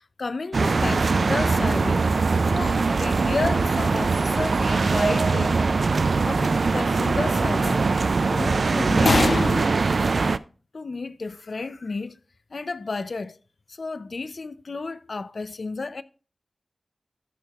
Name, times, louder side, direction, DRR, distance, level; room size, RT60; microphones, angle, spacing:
voice 1, 0.2-2.0 2.5-5.6 6.2-7.8 8.3-10.0 10.7-12.1 12.5-13.3 13.8-16.0, left 3 dB, 65° left, 0.5 m, -30 dB
sound 1, 0.5-10.4, right 4 dB, 70° right, 0.3 m, -22 dB
12.5 x 6.5 x 2.3 m
wide cardioid pair, 85°, 0 cm